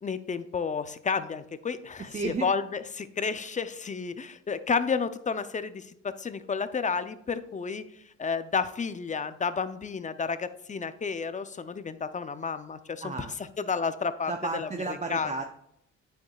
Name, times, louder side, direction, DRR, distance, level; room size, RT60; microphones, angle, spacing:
voice 1, 0.0-7.9 8.2-13.1 13.6-14.7 15.1-15.3, left 5 dB, 25° left, 12 dB, 0.5 m, -31 dB
voice 2, 2.0-2.5 13.0-13.3 14.3-15.4, right 3 dB, 25° right, 5 dB, 0.6 m, -33 dB
9.3 x 6.6 x 2.3 m, 0.75 s
cardioid pair, 90°, 30 cm